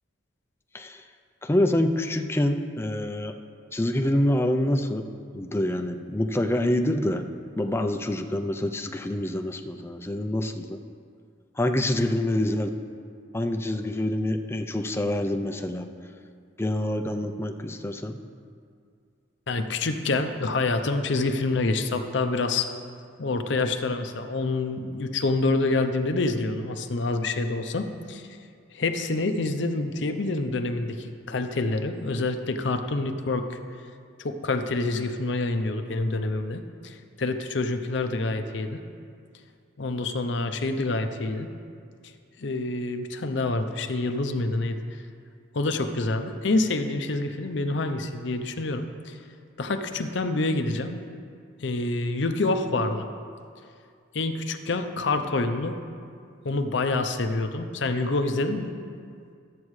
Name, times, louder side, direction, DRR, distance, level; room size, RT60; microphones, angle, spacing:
voice 1, 1.4-3.3 3.7-5.1 5.3-7.2 7.6-10.8 11.6-12.7 13.3-15.9 16.6-18.2, left 1 dB, 15° left, 5 dB, 0.4 m, -26 dB
voice 2, 19.5-22.7 23.2-28.3 28.7-33.6 34.2-38.8 39.8-41.5 42.4-44.8 45.5-49.2 49.6-51.0 51.6-53.1 54.1-55.8 56.4-58.7, left 2 dB, 65° left, 7 dB, 0.6 m, -27 dB
13.5 x 8.4 x 3.2 m, 2.2 s
head